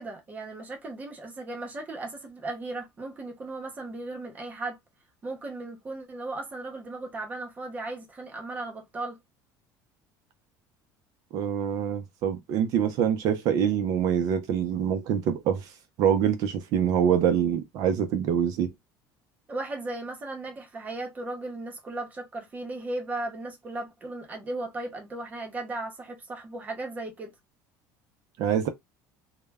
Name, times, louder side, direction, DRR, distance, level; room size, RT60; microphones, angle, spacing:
voice 1, 0.0-4.8 5.2-9.2 19.5-27.3, right 2 dB, 20° right, 0.7 m, -36 dB
voice 2, 11.3-15.7 16.0-18.7 28.4-28.7, right 8 dB, 50° right, 0.4 m, -25 dB
2.1 x 2.0 x 3.4 m
cardioid pair, 165°, 8 cm